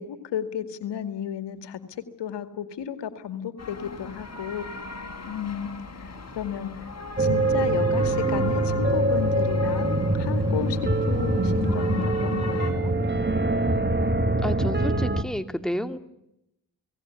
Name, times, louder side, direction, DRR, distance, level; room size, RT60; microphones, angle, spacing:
voice 1, 0.0-1.8 2.2-4.7 5.3-5.7 5.9-6.9 7.2-10.8 11.1-12.9, left 9 dB, 85° left, 10 dB, 2.3 m, -33 dB
sound 1, 3.6-12.7, left 4 dB, 40° left, 6.2 m, -39 dB
Creepy Horror Ambiant, 7.2-15.2, right 2 dB, 25° right, 2.5 m, -24 dB
voice 2, 14.4-16.0, equal, ahead, 8 dB, 2.7 m, -30 dB
29.5 x 19.0 x 9.9 m, 0.83 s
supercardioid pair, 45°, 41 cm